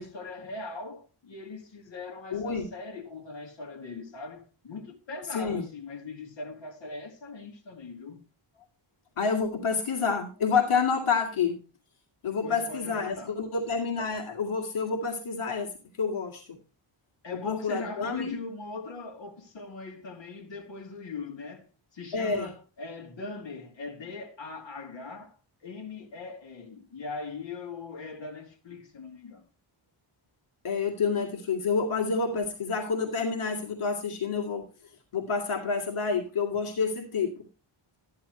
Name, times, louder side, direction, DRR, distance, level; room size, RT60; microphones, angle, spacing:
voice 1, 0.0-8.2 12.4-13.4 17.2-29.5, left 3 dB, 60° left, 2.6 m, -40 dB
voice 2, 2.3-2.7 5.3-5.6 9.2-11.6 12.2-15.7 16.0-16.6 17.4-18.4 22.1-22.5 30.6-34.6 35.1-37.4, left 5 dB, 80° left, 2.2 m, -28 dB
13.5 x 10.5 x 3.2 m
wide cardioid pair, 130°, 49 cm